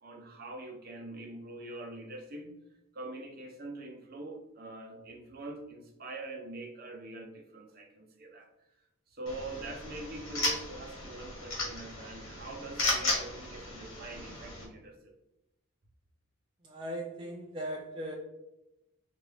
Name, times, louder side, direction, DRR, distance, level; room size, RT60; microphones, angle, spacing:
voice 1, 0.0-2.5 2.9-8.5 9.1-15.1, right 2 dB, 45° right, 1 dB, 0.8 m, -44 dB
sound 1, 9.3-14.6, left 2 dB, 90° left, 1.5 m, -35 dB
voice 2, 16.6-18.2, right 1 dB, 25° right, -1 dB, 0.4 m, -38 dB
4.5 x 2.5 x 3.4 m, 0.91 s
head